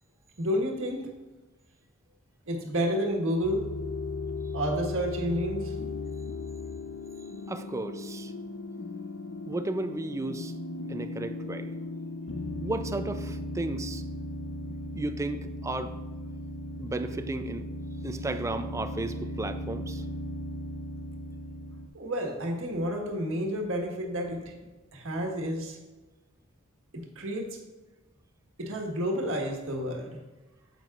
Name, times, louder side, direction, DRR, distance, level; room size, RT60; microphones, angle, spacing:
voice 1, 0.4-1.1 2.5-3.7 4.5-5.7 21.9-24.5 24.9-25.8 26.9-27.6 28.6-30.2, equal, 65° right, 1 dB, 1.5 m, -30 dB
sound 1, 3.4-21.9, left 2 dB, 65° left, 0.6 m, -37 dB
voice 2, 7.5-8.3 9.5-10.5 10.9-11.7 12.6-14.0 14.7-16.0 16.8-17.7 18.0-20.0, right 2 dB, 15° right, 10 dB, 0.3 m, -34 dB
9.2 x 7.8 x 2.4 m, 1.2 s
head